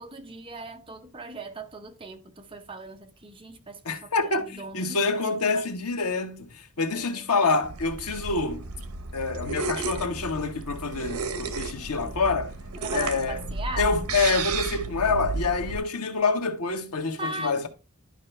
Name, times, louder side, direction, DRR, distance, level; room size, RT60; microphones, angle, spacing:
voice 1, 0.0-5.7 6.9-7.2 12.8-14.0 17.2-17.7, right 2 dB, 25° right, 0.9 m, -39 dB
voice 2, 3.8-8.7 9.1-12.5 12.9-13.4 13.8-17.7, left 4 dB, 90° left, 1.3 m, -27 dB
sound 1, 7.6-15.8, right 4 dB, 75° right, 1.0 m, -33 dB
11.5 x 5.2 x 3.3 m
head